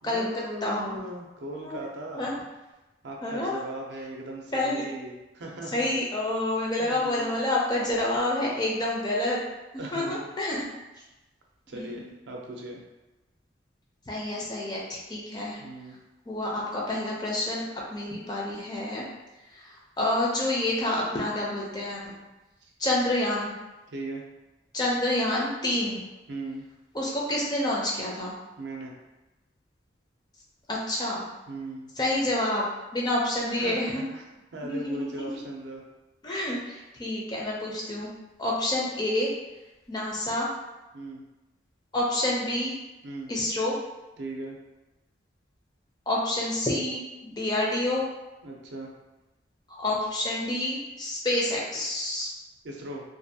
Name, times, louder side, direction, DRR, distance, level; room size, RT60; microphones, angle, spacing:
voice 1, 0.0-2.3 3.0-5.9 6.8-7.4 9.8-10.2 11.7-12.8 15.6-16.0 22.6-22.7 23.9-24.2 26.3-26.7 28.6-28.9 31.5-32.0 33.4-34.2 34.5-35.8 40.9-41.2 43.0-43.3 44.2-44.6 48.4-48.9 52.6-53.0, right 2 dB, 70° right, 0 dB, 0.5 m, -38 dB
voice 2, 0.6-1.0 1.6-1.8 2.2-2.4 3.2-3.6 4.5-4.8 5.7-9.4 9.9-10.7 11.7-12.1 14.1-15.6 16.3-19.0 19.5-19.7 20.0-22.1 22.8-23.5 24.7-26.0 26.9-28.4 30.7-31.2 32.0-32.6 32.9-34.1 34.6-35.4 36.2-38.1 38.4-39.3 39.9-40.5 41.9-42.7 43.3-43.7 46.1-48.1 49.7-52.3, left 1 dB, 20° left, -4 dB, 0.4 m, -28 dB
2.5 x 2.3 x 2.6 m, 1.1 s
head